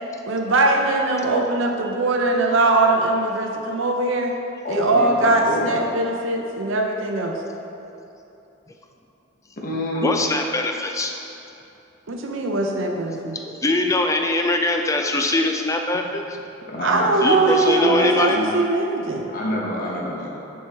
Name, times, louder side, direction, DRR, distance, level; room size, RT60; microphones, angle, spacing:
voice 1, 0.3-4.3 4.7-7.4 12.1-13.4 16.8-19.3, right 2 dB, 65° right, 2 dB, 0.6 m, -21 dB
voice 2, 4.6-5.8 9.6-10.1 16.7-18.5 19.3-20.4, left 1 dB, 45° left, -4 dB, 1.0 m, -28 dB
voice 3, 9.9-11.2 13.3-16.4 17.2-18.4, left 2 dB, 15° left, 4 dB, 0.4 m, -22 dB
9.3 x 4.4 x 3.4 m, 2.9 s
head